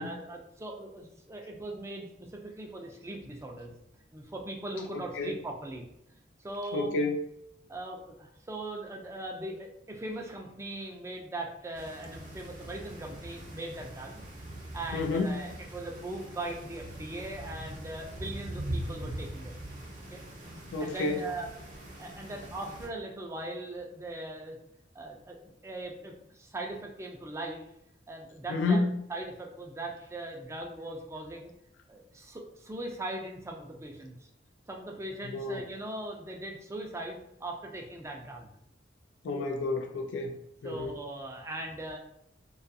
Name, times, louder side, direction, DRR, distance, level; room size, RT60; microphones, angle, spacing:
voice 1, 0.0-3.8 4.1-7.0 7.7-14.2 14.7-19.6 20.1-20.2 20.8-21.5 22.0-24.6 24.9-27.6 28.1-28.8 29.1-31.5 31.9-34.3 34.7-38.5 40.6-42.0, right 1 dB, 15° right, 1 dB, 0.3 m, -40 dB
voice 2, 6.7-7.2 14.9-15.4 20.7-21.2 28.5-28.9 35.3-35.6 39.2-40.3 40.6-41.0, left 3 dB, 85° left, 2 dB, 0.3 m, -29 dB
sound 1, 11.7-22.9, right 1 dB, 45° right, 0.7 m, -42 dB
2.3 x 2.3 x 2.6 m, 0.78 s
head